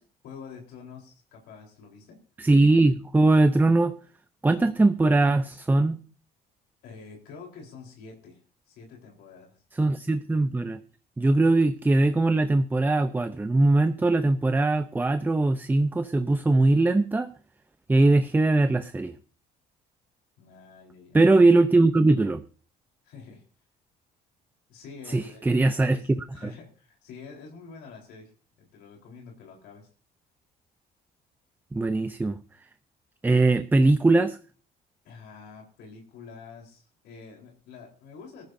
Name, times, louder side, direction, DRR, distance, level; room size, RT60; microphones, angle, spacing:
voice 1, 0.2-2.2 6.8-9.6 20.4-21.2 23.0-23.4 24.7-28.3 28.6-29.9 35.0-38.5, left 5 dB, 85° left, 0 dB, 4.0 m, -47 dB
voice 2, 2.4-3.9 4.4-6.0 9.8-10.8 11.2-17.3 17.9-19.1 21.1-22.4 25.1-26.0 31.7-32.4 33.2-34.4, right 2 dB, 10° right, 11 dB, 0.6 m, -21 dB
19.5 x 14.5 x 2.7 m, 0.39 s
cardioid pair, 110°, 17 cm